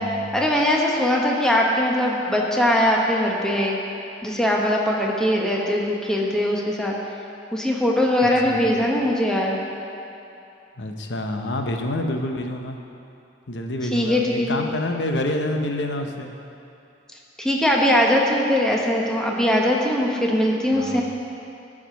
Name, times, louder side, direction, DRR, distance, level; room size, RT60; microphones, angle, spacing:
voice 1, 0.3-3.8 4.2-7.0 7.5-9.6 13.9-14.6 17.4-21.0, left 1 dB, 5° left, -2 dB, 1.0 m, -21 dB
voice 2, 8.2-8.6 10.8-12.8 13.5-16.3 20.7-21.0, left 1 dB, 80° left, 4 dB, 0.9 m, -27 dB
14.0 x 4.9 x 5.8 m, 2.8 s
head